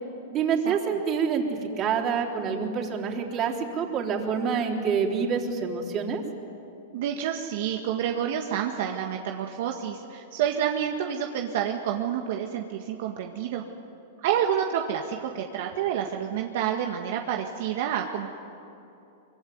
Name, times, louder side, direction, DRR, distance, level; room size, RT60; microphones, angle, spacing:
voice 1, 0.3-6.2, right 6 dB, 35° right, 1 dB, 3.9 m, -27 dB
voice 2, 6.9-13.6 14.2-18.3, right 9 dB, 65° right, 2 dB, 1.8 m, -28 dB
24.5 x 24.0 x 9.6 m, 2.9 s
hypercardioid pair, 130°, 0 cm